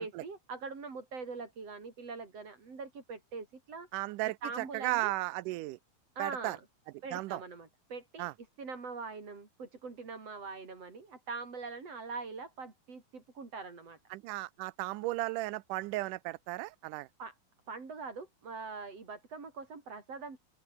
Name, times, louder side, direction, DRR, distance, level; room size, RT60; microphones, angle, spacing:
voice 1, 0.0-3.9 4.4-5.1 6.2-6.6 7.0-8.3 8.6-14.0 17.2-17.3 17.7-20.4, right 4 dB, 50° right, 5.6 m, -43 dB
voice 2, 3.9-5.8 6.2-6.6 7.1-7.4 8.2-8.3 14.1-17.1, right 18 dB, 85° right, 2.3 m, -35 dB
open air
omnidirectional pair, 3.6 m